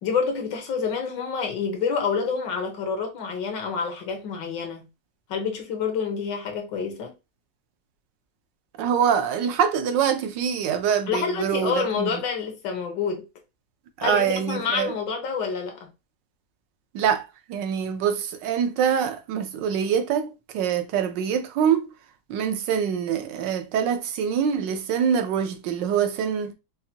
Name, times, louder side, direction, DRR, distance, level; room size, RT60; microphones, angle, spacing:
voice 1, 0.0-4.9 5.3-7.1 11.1-13.3 14.0-15.8, left 5 dB, 80° left, 1.6 m, -28 dB
voice 2, 8.8-12.1 14.0-14.9 16.9-21.9 22.3-26.5, right 8 dB, 85° right, 1.3 m, -24 dB
5.6 x 2.2 x 2.7 m
omnidirectional pair, 1.9 m